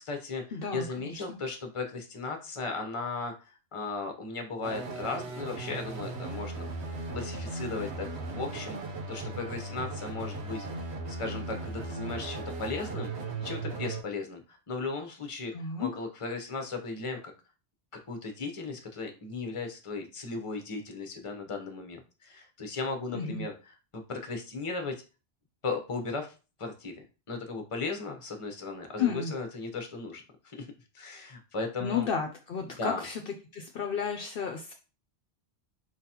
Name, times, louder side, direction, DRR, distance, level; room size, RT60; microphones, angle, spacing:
voice 1, 0.0-13.1 13.4-17.3 17.9-25.0 25.6-26.3 26.6-26.9 27.3-30.7 30.9-32.1 32.8-33.1, left 3 dB, 35° left, 4 dB, 0.8 m, -36 dB
voice 2, 0.5-1.4 15.5-15.9 23.1-23.5 29.0-29.3 31.8-33.2 33.5-34.7, left 6 dB, 65° left, 5 dB, 0.7 m, -32 dB
sound 1, 4.6-14.0, right 3 dB, 85° right, 1.1 m, -37 dB
4.7 x 3.9 x 2.9 m, 0.33 s
omnidirectional pair, 1.1 m